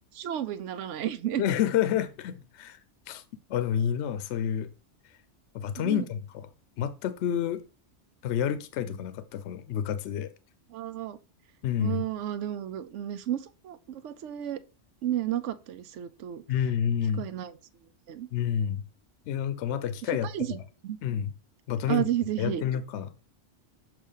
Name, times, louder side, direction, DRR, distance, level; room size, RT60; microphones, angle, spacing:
voice 1, 0.1-1.4 5.8-6.1 10.7-11.2 11.8-14.6 15.0-16.4 17.2-17.6 18.1-18.3 20.2-21.0 21.9-22.6, right 11 dB, 85° right, 0.9 m, -32 dB
voice 2, 1.4-2.8 3.1-3.2 3.5-4.7 5.5-6.5 6.8-7.6 8.2-10.3 11.6-12.0 16.5-17.2 18.3-18.8 19.3-20.3 21.0-21.3 21.7-22.1 22.4-23.1, left 9 dB, 75° left, 0.8 m, -29 dB
6.7 x 3.0 x 5.5 m
omnidirectional pair, 1.2 m